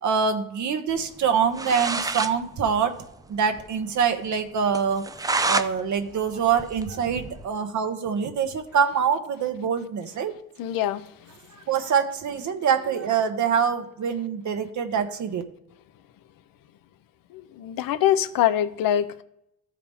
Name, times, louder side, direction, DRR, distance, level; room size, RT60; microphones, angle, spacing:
voice 1, 0.0-2.9 3.3-5.1 5.4-10.3 11.5-15.4, right 7 dB, 50° right, 1.1 m, -25 dB
sound 1, 1.3-1.4 1.5-2.3 2.7-2.8 3.0-3.1 3.5-3.6 4.0-4.1 4.7-5.7 6.1-7.4, right 3 dB, 10° right, 0.3 m, -28 dB
voice 2, 10.6-11.1 17.3-19.2, left 11 dB, 65° left, 0.7 m, -24 dB
13.5 x 4.9 x 3.5 m
cardioid pair, 110°, 36 cm